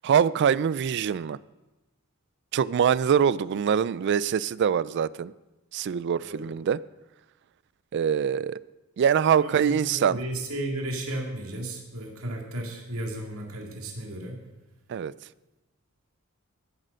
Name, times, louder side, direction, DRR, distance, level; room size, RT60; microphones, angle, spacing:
voice 1, 0.0-1.4 2.5-5.3 5.7-6.8 7.9-8.6 9.0-10.2 14.9-15.1, right 7 dB, 55° right, 20 dB, 0.3 m, -24 dB
voice 2, 6.2-6.5 9.3-14.4, right 1 dB, 80° right, 1 dB, 2.1 m, -34 dB
15.0 x 6.6 x 6.3 m, 1.1 s
head